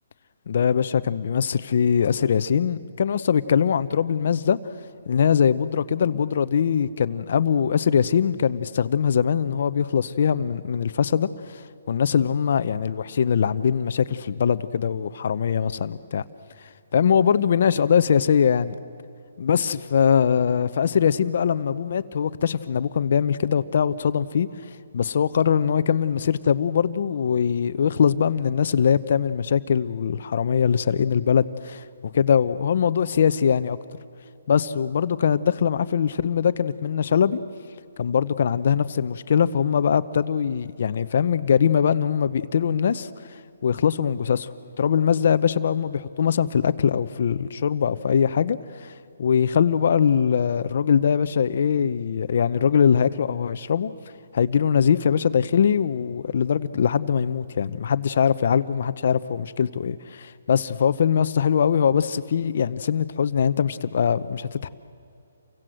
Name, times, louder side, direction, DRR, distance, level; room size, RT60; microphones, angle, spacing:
voice 1, 0.5-4.6 5.1-16.2 16.9-18.8 19.4-24.5 24.9-31.8 32.1-33.8 34.5-37.4 38.0-44.5 44.8-48.9 49.2-53.9 54.3-64.7, left 7 dB, 45° left, 0.8 m, -22 dB
29.5 x 24.5 x 7.8 m
hypercardioid pair, 175°, 0 cm